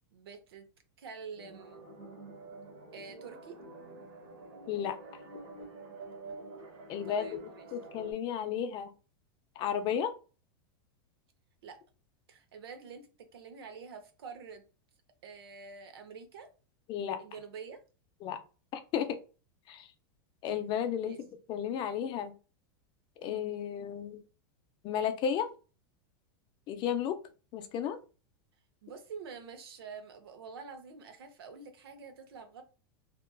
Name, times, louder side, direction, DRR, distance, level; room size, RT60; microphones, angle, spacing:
voice 1, 0.1-0.7 1.0-1.8 2.9-3.6 7.1-7.7 11.6-11.8 12.3-14.7 15.2-16.5 17.2-17.8 21.1-21.2 28.8-32.6, right 5 dB, 90° right, 7 dB, 0.7 m, -47 dB
sound 1, 1.4-8.1, right 2 dB, 65° right, 1.1 m, -48 dB
voice 2, 6.9-7.3 7.7-8.9 9.6-10.1 16.9-17.2 18.2-18.4 18.7-19.2 19.7-19.9 20.4-21.2 21.5-22.3 23.2-24.2 24.8-25.5 26.7-27.2 27.5-28.0, left 8 dB, 40° left, 9 dB, 0.4 m, -33 dB
2.8 x 2.5 x 2.2 m, 0.34 s
supercardioid pair, 130°, 12 cm